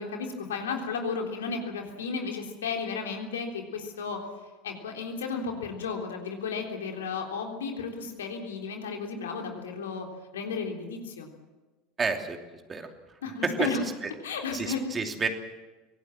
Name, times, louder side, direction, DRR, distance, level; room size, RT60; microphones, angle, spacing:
voice 1, 0.0-4.2 4.6-10.1 10.3-11.3 13.2-13.8 14.2-14.8, left 5 dB, 70° left, 2 dB, 3.5 m, -33 dB
voice 2, 12.0-12.4 12.7-12.9 13.4-14.1 14.5-15.3, right 4 dB, 25° right, 5 dB, 2.8 m, -30 dB
25.0 x 18.0 x 7.5 m, 1.2 s
figure-of-eight pair, 75°, 0 cm